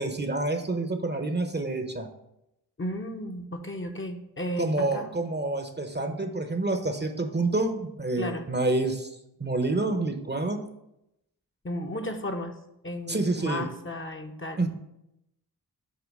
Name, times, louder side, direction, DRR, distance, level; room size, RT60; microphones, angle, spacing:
voice 1, 0.0-2.1 4.6-9.1 9.4-10.6 13.1-13.6 14.6-14.7, right 2 dB, 25° right, 6 dB, 0.7 m, -28 dB
voice 2, 2.8-5.1 8.2-8.4 11.6-12.6 12.8-14.6, left 1 dB, 30° left, 4 dB, 0.8 m, -34 dB
8.1 x 2.8 x 5.3 m, 0.84 s
cardioid pair, 55°, 40 cm